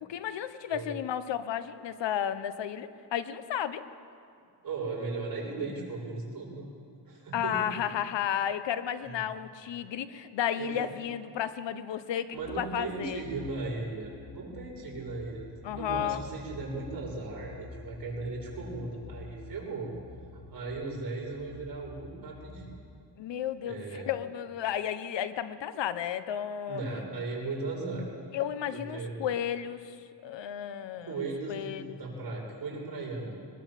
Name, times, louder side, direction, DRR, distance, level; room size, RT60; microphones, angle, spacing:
voice 1, 0.0-3.8 7.3-13.2 15.6-16.2 23.2-26.8 28.3-30.0 30.2-32.0, left 9 dB, 90° left, 12 dB, 1.1 m, -33 dB
voice 2, 4.6-6.7 7.1-7.6 9.0-9.2 10.6-10.7 12.3-19.9 20.5-22.8 23.6-24.1 26.7-28.1 28.7-29.2 31.0-33.3, right 3 dB, 55° right, -3 dB, 7.5 m, -37 dB
sound 1, 12.4-22.8, left 3 dB, 70° left, 1.8 m, -49 dB
23.0 x 21.0 x 7.6 m, 2.5 s
cardioid pair, 115°, 42 cm